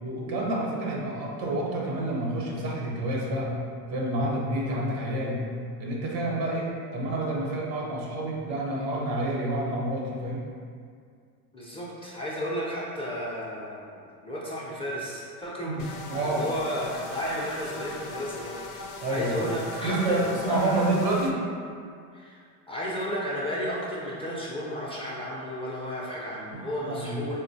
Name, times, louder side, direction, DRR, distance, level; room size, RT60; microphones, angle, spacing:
voice 1, 0.0-3.6 3.9-5.4 5.8-10.4 15.7-16.5 19.0-19.5 19.8-21.3 26.5-27.3, right 1 dB, 80° right, -2 dB, 0.8 m, -29 dB
voice 2, 11.5-20.9 22.1-22.4 22.7-27.4, equal, 10° left, -7 dB, 0.4 m, -33 dB
sound 1, 15.8-21.3, left 3 dB, 65° left, 0.5 m, -40 dB
3.8 x 2.1 x 2.6 m, 2.2 s
hypercardioid pair, 80°, 48 cm